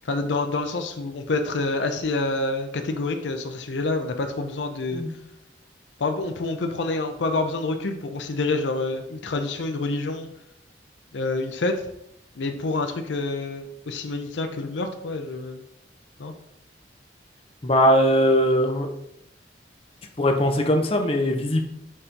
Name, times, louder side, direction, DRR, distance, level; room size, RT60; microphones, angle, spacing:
voice 1, 0.0-5.0 6.0-10.3 11.1-11.9 12.4-15.6 16.2-16.3, left 3 dB, 80° left, 6 dB, 0.6 m, -27 dB
voice 2, 17.6-18.9 20.2-21.6, equal, 30° left, 3 dB, 0.8 m, -20 dB
6.5 x 2.9 x 5.1 m, 0.78 s
head